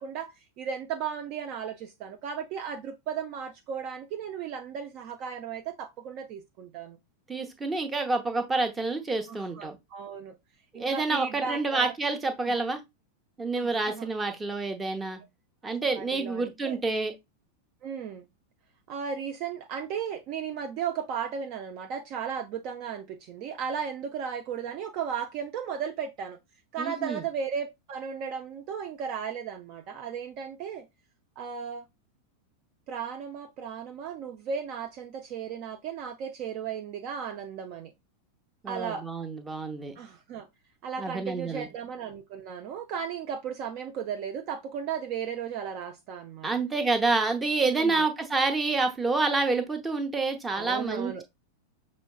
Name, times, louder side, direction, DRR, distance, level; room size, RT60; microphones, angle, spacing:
voice 1, 0.0-7.0 9.3-10.4 10.7-11.9 12.4-12.6 13.6-14.1 15.6-16.8 17.8-18.3 18.9-26.4 26.7-30.9 31.4-31.9 32.9-37.9 38.7-39.0 40.0-40.5 40.8-46.5 47.6-48.0 50.5-51.2, right 7 dB, 40° right, 0.4 m, -35 dB
voice 2, 7.3-9.8 10.7-12.8 13.4-15.2 15.6-17.1 26.8-27.2 38.6-40.0 41.0-41.7 46.4-51.2, right 3 dB, 15° right, 0.8 m, -28 dB
6.1 x 3.1 x 2.3 m
figure-of-eight pair, 90°, 0 cm